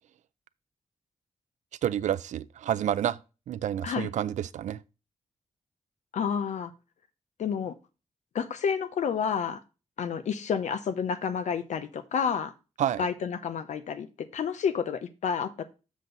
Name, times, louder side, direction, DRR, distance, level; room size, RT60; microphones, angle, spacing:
voice 1, 1.8-3.2 3.5-4.8 12.8-13.0, right 10 dB, 90° right, 0.4 m, -29 dB
voice 2, 6.1-6.7 7.4-7.7 8.3-9.6 10.0-12.5 13.0-14.1 14.3-15.6, left 7 dB, 80° left, 0.7 m, -29 dB
7.4 x 6.1 x 3.9 m
wide cardioid pair, 110°, 12 cm